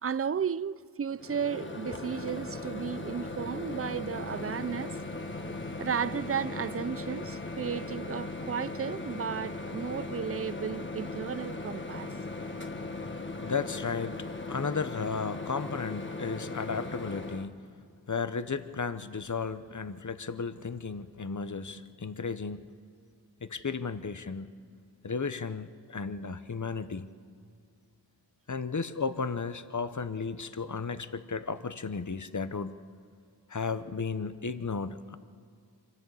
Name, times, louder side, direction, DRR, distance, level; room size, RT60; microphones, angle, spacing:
voice 1, 0.0-5.0 5.8-12.1, right 7 dB, 35° right, 0.4 m, -34 dB
Microwave oven, 1.2-17.5, left 2 dB, 25° left, 1.4 m, -38 dB
voice 2, 13.4-14.2 14.5-17.5 18.1-22.7 23.4-24.5 25.0-27.1 28.5-32.7 33.5-35.2, left 5 dB, 45° left, 0.9 m, -34 dB
25.0 x 15.0 x 8.2 m
wide cardioid pair, 45°, 43 cm